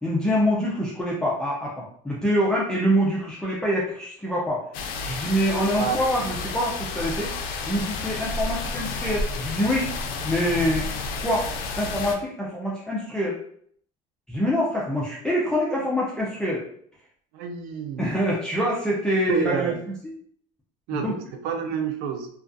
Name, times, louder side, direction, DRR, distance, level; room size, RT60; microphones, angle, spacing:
voice 1, 0.0-4.6 5.0-7.3 7.7-9.9 10.2-10.9 11.2-11.5 11.8-13.4 14.3-16.6 18.0-19.7 20.9-21.1, equal, 5° left, -6 dB, 0.4 m, -25 dB
sound 1, 4.7-12.1, left 3 dB, 60° left, 0.4 m, -31 dB
voice 2, 17.3-18.1 19.3-19.8 20.9-22.3, right 6 dB, 65° right, 5 dB, 0.4 m, -28 dB
2.3 x 2.3 x 2.5 m, 0.63 s
cardioid pair, 130°, 16 cm